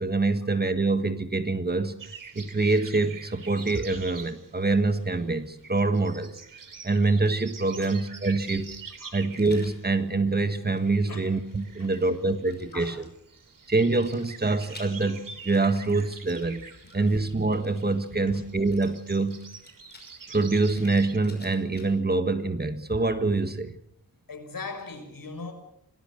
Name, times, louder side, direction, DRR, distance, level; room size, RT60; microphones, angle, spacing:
voice 1, 0.0-2.0 2.3-6.4 6.8-8.7 9.1-13.1 13.7-16.6 16.9-19.4 20.3-23.8, right 3 dB, 25° right, 9 dB, 1.6 m, -25 dB
sound 1, 2.0-21.2, right 5 dB, 65° right, 2.9 m, -46 dB
Rattle, 9.3-9.8 10.4-13.1 14.0-18.1 18.7-22.1, left 2 dB, 30° left, 5.8 m, -53 dB
voice 2, 24.3-25.5, left 4 dB, 70° left, 6 dB, 6.1 m, -39 dB
27.0 x 19.5 x 6.6 m, 0.72 s
wide cardioid pair, 145°, 36 cm